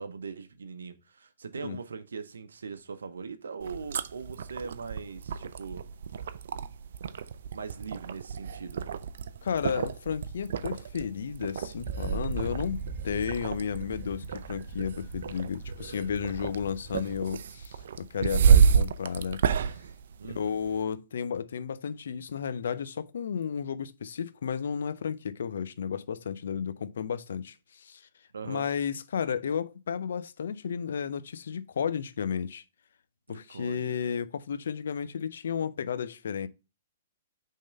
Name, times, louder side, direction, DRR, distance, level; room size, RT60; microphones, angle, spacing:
voice 1, 0.0-5.9 6.5-6.6 7.5-8.8 20.2-20.6 28.3-28.7 33.3-34.0, right 5 dB, 85° right, 0.8 m, -41 dB
sound 1, 3.6-20.8, right 7 dB, 70° right, 0.5 m, -29 dB
voice 2, 9.4-19.7 20.4-28.1 28.4-32.6 33.3-36.5, left 7 dB, 75° left, 0.5 m, -33 dB
Wind, 11.8-17.3, right 3 dB, 35° right, 1.1 m, -39 dB
5.4 x 3.7 x 5.2 m
hypercardioid pair, 135°, 0 cm